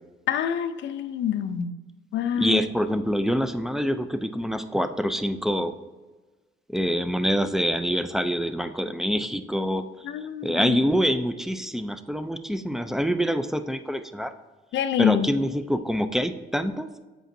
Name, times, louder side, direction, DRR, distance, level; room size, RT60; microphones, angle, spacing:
voice 1, 0.3-1.7 2.1-2.6 10.0-10.8 14.7-15.3, left 9 dB, 70° left, 10 dB, 0.5 m, -26 dB
voice 2, 2.3-5.7 6.7-9.9 10.4-14.3 15.0-16.9, equal, ahead, 10 dB, 0.4 m, -25 dB
7.6 x 5.1 x 2.6 m, 1.2 s
cardioid pair, 90°, 20 cm